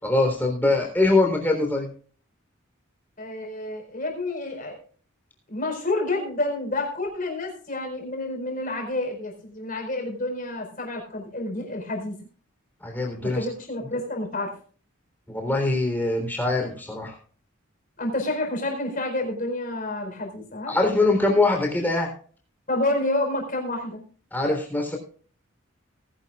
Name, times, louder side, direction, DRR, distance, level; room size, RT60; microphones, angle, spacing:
voice 1, 0.0-1.9 12.8-13.4 15.3-17.2 20.7-22.1 24.3-25.0, left 2 dB, 10° left, 2 dB, 3.5 m, -23 dB
voice 2, 3.2-4.8 5.5-12.2 13.2-14.5 18.0-20.7 22.7-24.0, left 2 dB, 40° left, 1 dB, 4.5 m, -29 dB
19.5 x 11.0 x 2.4 m, 0.42 s
head